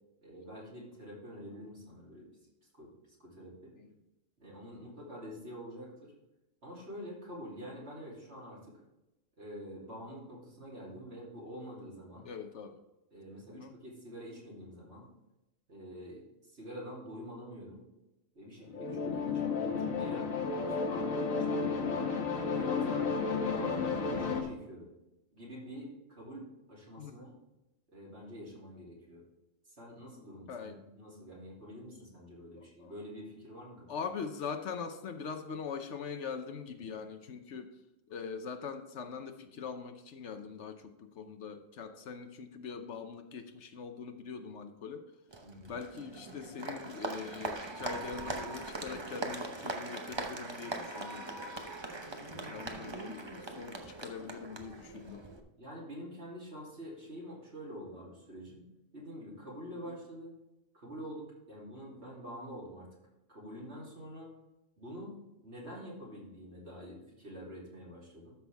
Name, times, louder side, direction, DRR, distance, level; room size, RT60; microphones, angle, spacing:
voice 1, 0.2-2.3 2.7-2.9 3.2-3.7 4.4-6.1 6.6-8.8 9.4-12.3 13.1-15.1 15.7-16.2 16.5-17.8 18.3-20.3 20.8-23.1 23.4-24.9 25.3-27.3 27.9-29.2 29.8-33.9 45.4-45.8 52.2-52.5 55.6-58.7 58.9-60.3 60.7-62.9 63.3-64.3 64.8-65.2 65.4-68.3, equal, 50° right, -4 dB, 3.2 m, -47 dB
voice 2, 12.2-12.8 13.5-13.7 27.0-27.2 30.5-30.8 32.6-32.9 33.9-37.7 38.1-45.0 45.7-51.3 52.4-55.2 59.9-60.0, left 6 dB, 60° left, 8 dB, 1.0 m, -42 dB
sound 1, 18.7-24.4, left 5 dB, 80° left, 1.6 m, -32 dB
Applause, 45.3-55.4, right 2 dB, 25° right, 0.7 m, -41 dB
13.0 x 6.0 x 3.5 m, 0.94 s
omnidirectional pair, 1.4 m